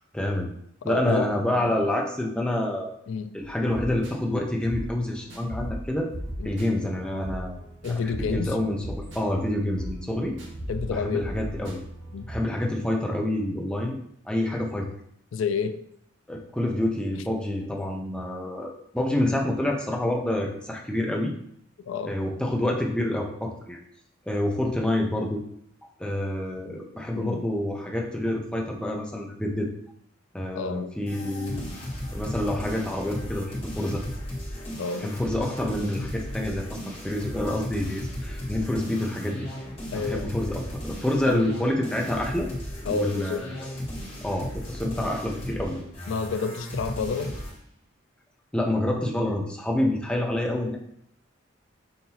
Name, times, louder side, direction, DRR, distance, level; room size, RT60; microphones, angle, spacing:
voice 1, 0.1-0.5 0.8-2.9 3.3-6.1 6.4-7.6 7.9-10.3 10.9-11.8 12.3-14.0 14.3-14.9 16.3-21.3 22.1-23.8 24.3-25.4 26.0-29.7 30.3-31.6 32.1-34.0 35.0-39.5 39.9-42.5 42.9-43.5 44.2-45.8 48.5-50.8, left 1 dB, 5° left, 0 dB, 0.5 m, -27 dB
voice 2, 0.8-1.8 3.1-3.3 6.4-6.6 7.8-8.6 10.7-11.3 12.1-12.3 15.3-15.8 17.2-17.3 21.9-22.2 27.1-27.4 30.5-30.9 34.8-35.1 39.9-40.4 41.3-41.5 42.9-43.4 46.1-47.4, left 5 dB, 75° left, 11 dB, 0.3 m, -29 dB
sound 1, 3.4-12.4, equal, 65° right, 1.1 m, -38 dB
sound 2, 31.1-47.6, equal, 30° left, 1.4 m, -36 dB
5.5 x 2.7 x 2.8 m, 0.70 s
head